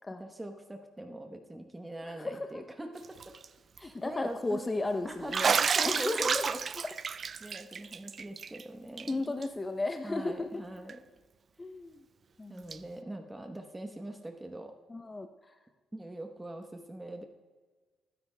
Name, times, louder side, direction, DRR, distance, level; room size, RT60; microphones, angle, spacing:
voice 1, 0.2-3.3 3.8-4.6 5.0-6.6 7.4-9.3 10.0-11.0 12.5-14.7 15.9-17.2, right 1 dB, 15° right, 4 dB, 0.9 m, -42 dB
voice 2, 2.0-2.6 3.8-5.6 5.8-6.4 9.1-10.6 11.6-12.0 12.4-12.7 14.9-15.3, left 2 dB, 20° left, 7 dB, 0.6 m, -34 dB
Bathtub (filling or washing), 3.0-3.5 3.8-3.9 5.3-8.6 9.0-9.1 9.4-9.5 10.9-11.0 12.7-12.8, right 6 dB, 45° right, 0.4 m, -30 dB
28.0 x 10.0 x 2.2 m, 1.4 s
cardioid pair, 90°, 0 cm